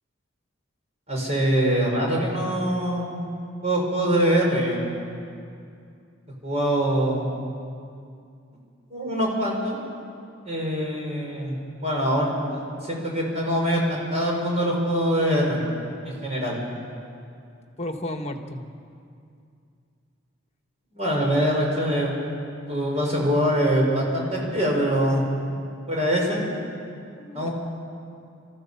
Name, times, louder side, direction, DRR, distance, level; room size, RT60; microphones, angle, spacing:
voice 1, 1.1-3.3 3.6-4.8 6.4-7.3 8.9-9.8 10.5-15.6 16.2-16.6 20.9-22.2 22.7-25.2 25.9-26.4 27.3-27.5, equal, 35° right, -1 dB, 5.4 m, -23 dB
voice 2, 17.8-18.6 25.5-25.6 27.2-27.5, left 1 dB, 35° left, 5 dB, 1.5 m, -33 dB
26.5 x 14.5 x 7.1 m, 2.4 s
head